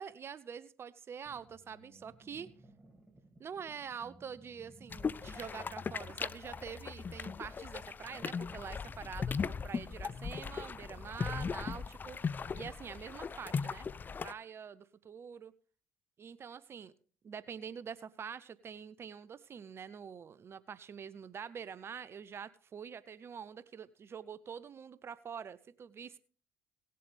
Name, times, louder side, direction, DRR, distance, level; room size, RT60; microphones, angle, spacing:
voice 1, 0.0-2.5 3.4-12.2 12.5-13.9 14.2-15.5 16.2-16.9 17.2-26.2, right 7 dB, 45° right, 16 dB, 0.7 m, -46 dB
sound 1, 1.3-11.7, equal, 15° right, 2.1 m, -57 dB
sound 2, 4.9-14.3, left 5 dB, 30° left, 0.5 m, -38 dB
18.5 x 7.7 x 3.4 m, 0.42 s
hypercardioid pair, 65°, 6 cm